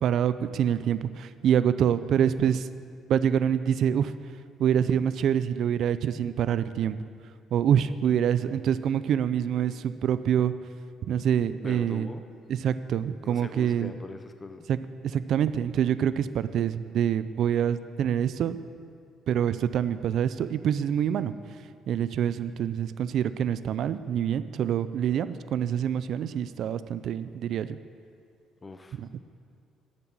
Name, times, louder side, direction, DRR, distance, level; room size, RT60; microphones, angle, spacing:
voice 1, 0.0-2.7 3.1-4.1 4.6-7.0 7.5-10.5 11.0-12.1 12.5-13.9 14.7-14.8 15.0-18.6 19.3-21.4 21.9-27.8 28.9-29.2, right 9 dB, 55° right, 13 dB, 0.4 m, -26 dB
voice 2, 11.3-12.2 13.2-14.6 28.6-29.0, left 3 dB, 15° left, 7 dB, 0.6 m, -42 dB
12.0 x 7.0 x 8.8 m, 2.3 s
cardioid pair, 155°, 0 cm